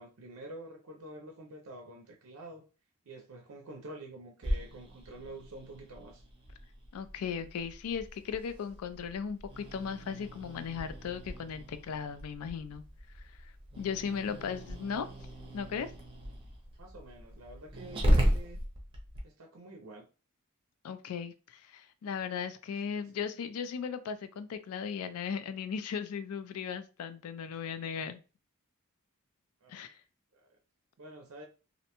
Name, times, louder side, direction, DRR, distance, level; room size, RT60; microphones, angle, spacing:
voice 1, 0.0-2.6 3.1-6.2 14.1-14.6 15.6-15.8 16.8-18.6 19.2-20.1 22.8-23.1 29.6-29.9 30.3-30.5 31.0-31.5, right 1 dB, 70° right, 0.5 m, -48 dB
Growling, 4.4-19.2, equal, 25° right, 0.6 m, -36 dB
voice 2, 6.9-12.8 13.8-15.1 15.5-15.9 20.8-28.2 29.7-30.0, left 6 dB, 75° left, 0.3 m, -37 dB
2.5 x 2.1 x 2.8 m
head